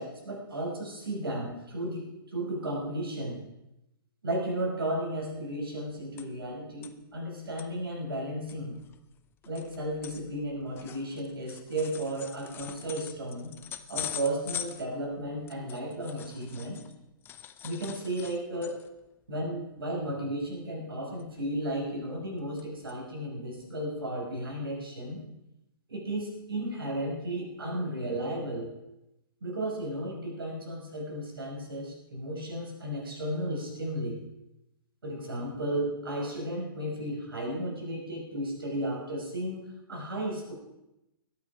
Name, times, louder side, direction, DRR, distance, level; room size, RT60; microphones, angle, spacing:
voice 1, 0.0-3.4 4.2-8.7 9.4-13.5 13.9-16.8 17.6-18.8 19.3-25.2 25.9-28.7 29.4-34.2 35.0-40.5, right 1 dB, 70° right, -1 dB, 5.9 m, -34 dB
sound 1, 5.5-6.5 6.8-6.9 7.4-7.7 8.2-8.3 8.5-16.9 17.2-19.0 19.4-19.6 19.9-20.1 21.2-21.7 22.2-22.6 22.9-23.0 23.6-23.7, left 10 dB, 15° left, 0.7 m, -43 dB
21.0 x 8.8 x 4.9 m, 0.91 s
figure-of-eight pair, 125°, 12 cm